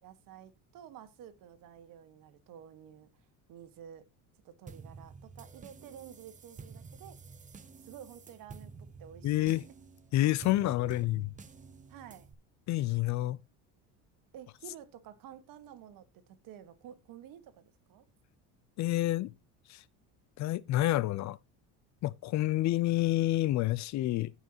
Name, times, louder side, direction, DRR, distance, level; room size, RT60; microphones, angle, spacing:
voice 1, 0.0-3.1 3.5-4.1 4.4-7.2 7.8-9.6 10.6-11.1 11.9-12.3 14.3-18.0, right 9 dB, 60° right, 1.6 m, -51 dB
sound 1, 4.7-12.3, right 5 dB, 20° right, 0.9 m, -50 dB
voice 2, 9.2-9.6 10.1-11.3 12.7-13.4 18.8-19.3 19.7-19.8 20.4-21.4 22.0-24.3, left 16 dB, 50° left, 0.5 m, -28 dB
16.0 x 5.7 x 2.9 m
cardioid pair, 115°, 38 cm